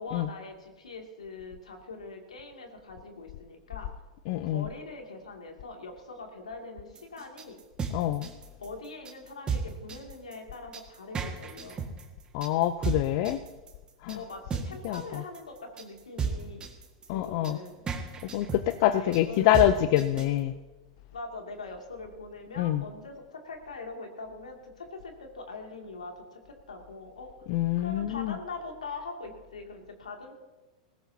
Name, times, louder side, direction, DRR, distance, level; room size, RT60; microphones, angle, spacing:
voice 1, 0.0-3.9 4.4-7.6 8.6-11.8 14.1-16.7 17.1-17.9 18.8-20.0 21.1-27.3 27.8-30.3, left 3 dB, 90° left, 2 dB, 2.6 m, -42 dB
voice 2, 4.3-4.7 7.9-8.3 12.3-13.4 14.0-14.2 14.8-15.2 17.1-17.6 18.3-20.5 22.6-22.8 27.5-28.3, left 13 dB, 55° left, 11 dB, 0.6 m, -26 dB
sound 1, 7.0-20.4, right 5 dB, 25° right, 1.8 m, -34 dB
20.0 x 17.0 x 2.9 m, 1.2 s
hypercardioid pair, 105°, 4 cm